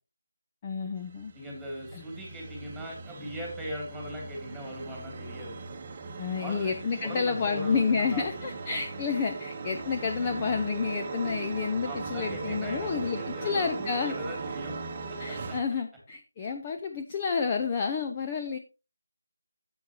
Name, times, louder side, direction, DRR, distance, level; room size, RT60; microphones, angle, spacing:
voice 1, 0.6-1.3 1.9-2.0 6.2-14.1 15.2-18.6, left 5 dB, 20° left, 5 dB, 0.7 m, -30 dB
sound 1, 1.0-15.6, right 4 dB, 25° right, 1.0 m, -39 dB
voice 2, 1.3-5.6 6.4-6.7 7.0-8.3 11.8-14.7 15.1-15.2, equal, ahead, -2 dB, 2.9 m, -39 dB
10.5 x 8.1 x 2.9 m, 0.29 s
figure-of-eight pair, 165°, 0 cm